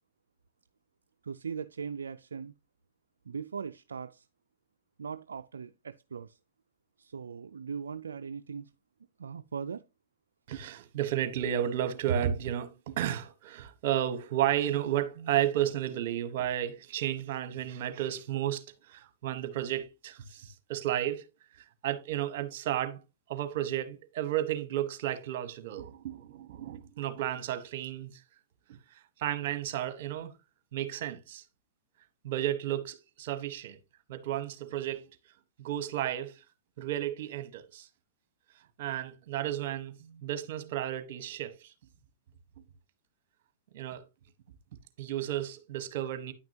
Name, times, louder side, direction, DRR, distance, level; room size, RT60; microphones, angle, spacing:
voice 1, 1.2-2.5 3.3-4.3 5.0-6.4 7.0-8.7 9.2-9.8, right 6 dB, 90° right, 0.4 m, -39 dB
voice 2, 10.5-21.2 21.8-23.0 23.3-28.1 28.7-28.8 29.2-30.3 30.7-31.4 32.2-33.8 34.1-35.1 35.6-36.4 36.8-37.9 38.8-41.7 43.7-44.0 45.0-46.3, right 11 dB, 60° right, 1.2 m, -32 dB
9.7 x 6.0 x 2.8 m
hypercardioid pair, 120°, 0 cm